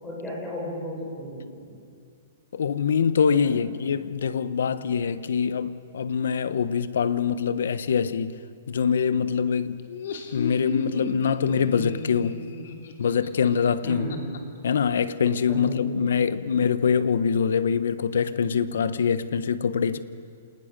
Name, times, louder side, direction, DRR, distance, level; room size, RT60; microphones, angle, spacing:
voice 1, 0.0-1.7 3.3-3.6 13.8-14.4 15.5-16.1, equal, 10° left, 6.4 m, -35 dB
voice 2, 2.5-8.4 8.7-9.8 10.3-12.4 13.0-14.1 14.6-20.0, left 6 dB, 80° left, 1.1 m, -24 dB
Laughter, 9.8-14.4, left 5 dB, 60° left, 2.7 m, -34 dB
27.5 x 19.5 x 6.8 m
hypercardioid pair, 170°, 0 cm